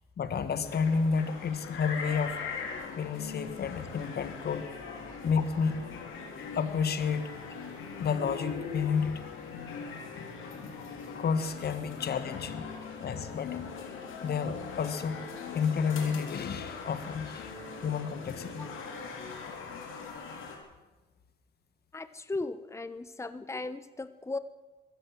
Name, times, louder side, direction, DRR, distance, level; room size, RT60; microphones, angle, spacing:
voice 1, 0.2-2.4 3.0-4.7 5.2-5.9 6.5-7.3 8.0-9.2 11.2-12.7 13.0-13.7 14.2-15.3 15.5-18.7, left 6 dB, 55° left, 11 dB, 1.7 m, -31 dB
sound 1, 0.6-20.6, left 5 dB, 85° left, 4.1 m, -41 dB
voice 2, 21.9-24.4, left 3 dB, 15° left, 13 dB, 1.1 m, -37 dB
21.5 x 16.0 x 7.7 m, 1.2 s
cardioid pair, 90°, 20 cm